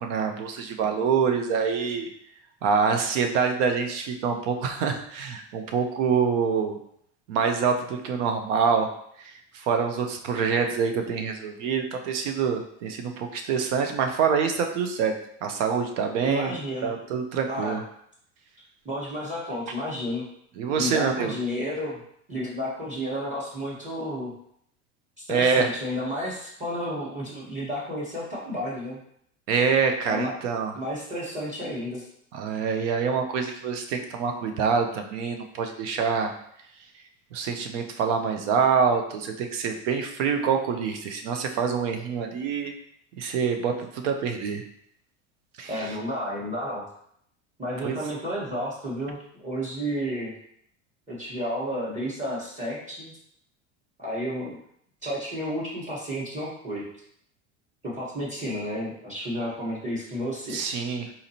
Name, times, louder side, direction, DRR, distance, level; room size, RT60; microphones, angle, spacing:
voice 1, 0.0-2.1 2.6-6.8 7.3-8.9 9.2-15.1 15.4-16.5 16.8-17.8 20.6-21.3 25.3-25.7 29.5-30.7 32.3-36.3 37.3-42.7 43.2-44.6 45.6-46.0 47.8-48.0 60.5-61.1, right 6 dB, 75° right, 5 dB, 0.7 m, -26 dB
voice 2, 16.2-16.9 17.5-17.8 18.8-20.3 20.8-22.0 22.3-24.3 25.2-29.0 30.0-30.3 30.7-32.0 45.7-46.9 47.6-50.3 51.1-53.1 54.0-54.6 55.0-56.9 57.8-60.6, equal, 20° right, -5 dB, 1.2 m, -31 dB
4.1 x 2.5 x 2.8 m, 0.69 s
hypercardioid pair, 85°, 37 cm